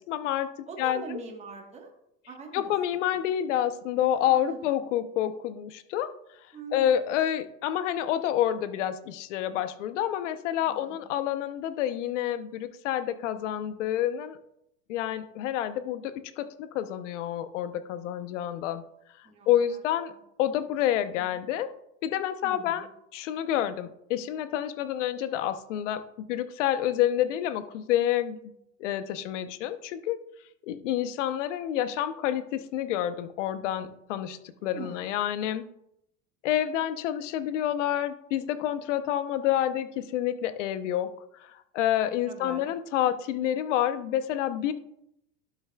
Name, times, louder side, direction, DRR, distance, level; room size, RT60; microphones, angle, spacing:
voice 1, 0.0-0.5 0.8-1.2 2.5-6.1 6.7-14.4 14.9-18.8 19.5-20.1 20.4-21.7 22.0-22.9 23.1-26.0 26.3-28.4 28.8-30.2 30.6-35.6 36.4-41.1 41.4-44.7, left 11 dB, 85° left, 12 dB, 0.8 m, -28 dB
voice 2, 0.7-1.9 2.3-2.7 4.1-4.6 6.5-6.9 10.6-11.1 19.2-19.8 20.1-20.2 21.2-21.4 22.4-22.9 34.6-35.1 42.2-42.7, right 4 dB, 20° right, 1 dB, 1.3 m, -43 dB
12.0 x 6.9 x 2.3 m, 0.77 s
supercardioid pair, 130°, 36 cm